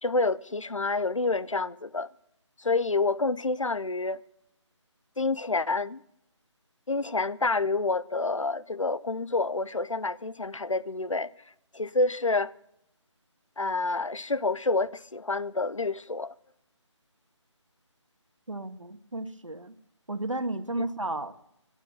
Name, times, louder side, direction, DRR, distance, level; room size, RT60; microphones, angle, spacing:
voice 1, 0.0-2.1 2.6-4.2 5.2-6.0 6.9-11.3 11.7-12.5 13.6-16.3, left 3 dB, 85° left, 0.8 m, -28 dB
voice 2, 18.5-19.7 20.1-21.3, right 2 dB, 85° right, 1.7 m, -33 dB
17.5 x 9.2 x 7.6 m
figure-of-eight pair, 155°, 16 cm